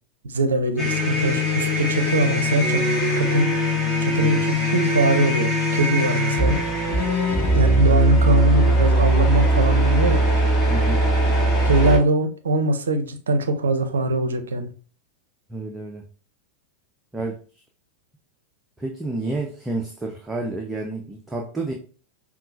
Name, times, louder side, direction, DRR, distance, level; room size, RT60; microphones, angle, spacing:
voice 1, 0.2-2.8 3.2-3.5 4.0-6.6 7.5-10.2 11.7-14.7, right 2 dB, 70° right, 8 dB, 0.5 m, -22 dB
sound 1, 0.8-12.0, equal, 20° left, 1.5 m, -20 dB
voice 2, 10.7-11.1 15.5-16.0 17.1-17.4 18.8-21.7, right 2 dB, 10° right, 1 dB, 0.6 m, -30 dB
5.5 x 2.4 x 2.6 m, 0.39 s
figure-of-eight pair, 90°, 0 cm